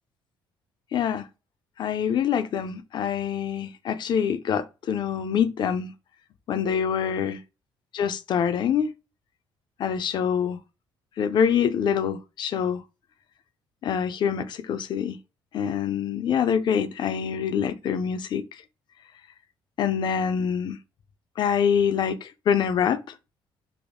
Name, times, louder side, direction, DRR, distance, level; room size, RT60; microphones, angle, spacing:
voice 1, 0.9-1.3 1.8-5.9 6.5-7.4 7.9-8.9 9.8-10.6 11.2-12.8 13.8-15.2 15.5-18.4 19.8-20.8 21.4-23.0, left 7 dB, 50° left, 0.4 m, -25 dB
3.4 x 2.0 x 3.7 m
cardioid pair, 110°, 10 cm